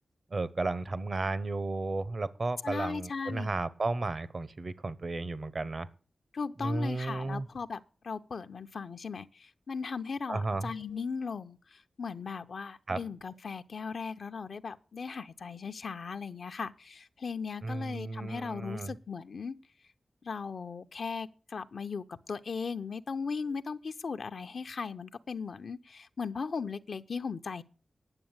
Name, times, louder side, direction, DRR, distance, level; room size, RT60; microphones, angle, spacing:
voice 1, 0.3-5.9 6.6-7.5 10.3-10.7 12.9-13.0 17.6-19.0, right 3 dB, 50° right, 0.9 m, -33 dB
voice 2, 2.6-3.5 6.3-19.6 20.2-27.6, left 5 dB, 70° left, 0.7 m, -38 dB
9.9 x 7.2 x 9.0 m
cardioid pair, 70°, 0 cm